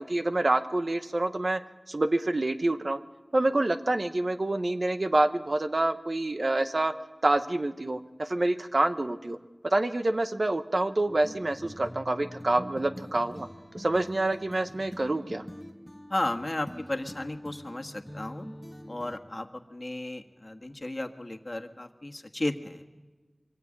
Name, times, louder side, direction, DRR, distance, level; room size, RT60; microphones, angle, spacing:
voice 1, 0.0-1.6 1.9-3.0 3.3-6.9 7.2-9.4 9.6-13.5 13.7-15.4, right 2 dB, 60° right, 8 dB, 1.2 m, -27 dB
sound 1, 11.1-19.2, equal, ahead, 1.8 m, -44 dB
voice 2, 16.1-18.5 18.9-22.9, left 1 dB, 40° left, 5 dB, 1.7 m, -34 dB
24.5 x 18.0 x 8.9 m, 1.3 s
wide cardioid pair, 55°, 0 cm